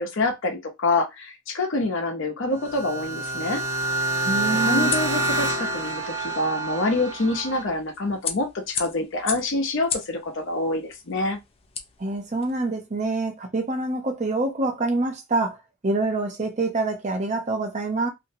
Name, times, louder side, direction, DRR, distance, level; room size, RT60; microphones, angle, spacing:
voice 1, 0.0-3.6 4.6-11.4, left 2 dB, 60° left, 0.7 m, -26 dB
sound 1, 2.6-7.6, right 2 dB, 90° right, 0.7 m, -27 dB
sound 2, 2.7-12.6, left 6 dB, 30° left, 0.4 m, -38 dB
voice 2, 4.2-4.9 12.0-18.1, right 2 dB, 35° right, 0.6 m, -26 dB
2.5 x 2.1 x 2.7 m
head